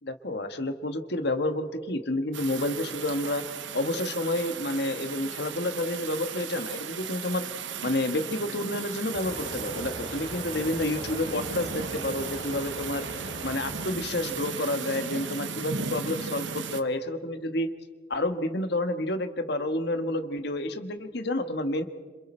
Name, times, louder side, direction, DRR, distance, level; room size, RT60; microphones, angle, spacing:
voice 1, 0.0-3.4 3.7-7.4 7.8-13.0 13.4-17.7 18.1-21.8, left 1 dB, 55° left, 9 dB, 1.4 m, -29 dB
sound 1, 2.3-16.8, right 6 dB, 70° right, 1.1 m, -36 dB
sound 2, 9.1-14.5, equal, 35° left, 6.4 m, -41 dB
27.5 x 27.0 x 4.4 m, 1.5 s
head